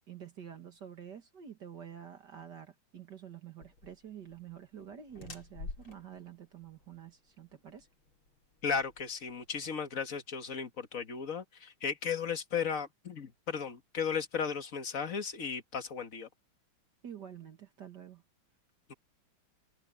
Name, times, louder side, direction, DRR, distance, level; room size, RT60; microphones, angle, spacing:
voice 1, 0.1-7.9 17.0-18.2, right 9 dB, 55° right, 2.3 m, -48 dB
sound 1, 3.6-9.7, left 3 dB, 85° left, 5.1 m, -50 dB
voice 2, 8.6-16.3 18.9-19.0, left 6 dB, 40° left, 1.9 m, -35 dB
omnidirectional pair, 2.2 m